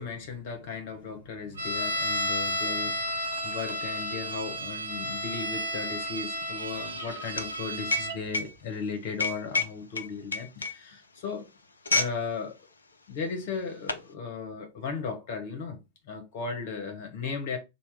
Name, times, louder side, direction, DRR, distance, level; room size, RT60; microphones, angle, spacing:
voice 1, 0.0-11.5 11.9-12.6 13.1-15.8 16.1-17.6, left 5 dB, 50° left, 0.9 m, -36 dB
sound 1, 1.6-8.2, equal, 75° right, 0.8 m, -32 dB
sound 2, 1.9-2.0 2.3-12.2 12.5-12.8 13.4-14.1, left 3 dB, 75° left, 0.3 m, -33 dB
2.8 x 2.1 x 3.3 m
figure-of-eight pair, 90°, 0 cm